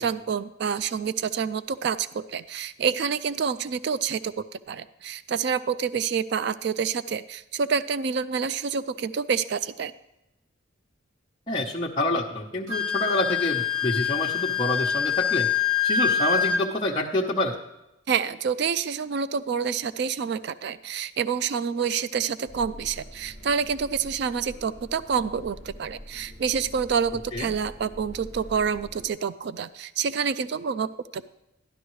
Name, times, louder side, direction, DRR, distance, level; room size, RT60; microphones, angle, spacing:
voice 1, 0.0-9.9 18.1-31.3, right 6 dB, 55° right, 15 dB, 0.3 m, -28 dB
voice 2, 11.5-15.5 15.8-17.6 27.3-27.5, left 2 dB, 25° left, -5 dB, 0.9 m, -27 dB
Wind instrument woodwind instrument, 12.7-16.6, left 7 dB, 85° right, 1.1 m, -25 dB
sound 1, 22.5-29.1, equal, 40° right, 2.6 m, -44 dB
12.5 x 11.5 x 3.1 m, 0.91 s
head